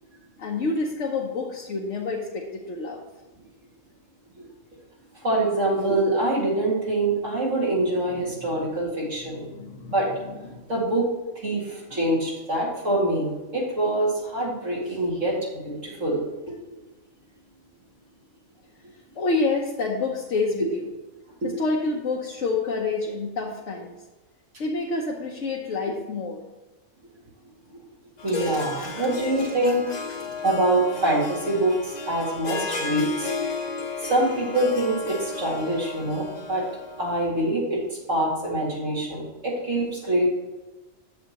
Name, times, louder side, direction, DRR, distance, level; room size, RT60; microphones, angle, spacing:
voice 1, 0.4-3.0 8.1-8.7 9.2-10.7 11.9-12.0 19.1-20.9 21.4-23.9 24.6-26.4 28.4-29.1 29.4-29.5 29.9-30.2, left 3 dB, 65° left, -2 dB, 1.2 m, -29 dB
voice 2, 5.2-9.5 9.8-10.1 10.7-11.1 11.3-16.6 21.4-21.5 27.7-27.8 28.2-29.8 30.4-33.3 34.0-36.6 37.0-40.3, right 1 dB, 65° right, -5 dB, 2.5 m, -25 dB
Harp, 28.2-37.2, left 4 dB, 40° left, 0.7 m, -34 dB
10.0 x 7.6 x 3.0 m, 1.2 s
omnidirectional pair, 1.4 m